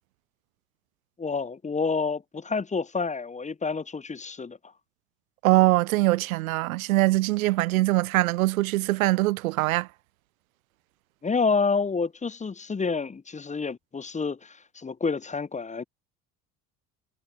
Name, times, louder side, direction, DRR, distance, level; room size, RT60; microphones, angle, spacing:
voice 1, 1.2-4.6 11.2-15.8, left 4 dB, 15° left, 1.0 m, -28 dB
voice 2, 5.4-9.9, right 19 dB, 70° right, 0.6 m, -22 dB
figure-of-eight pair, 55°, 43 cm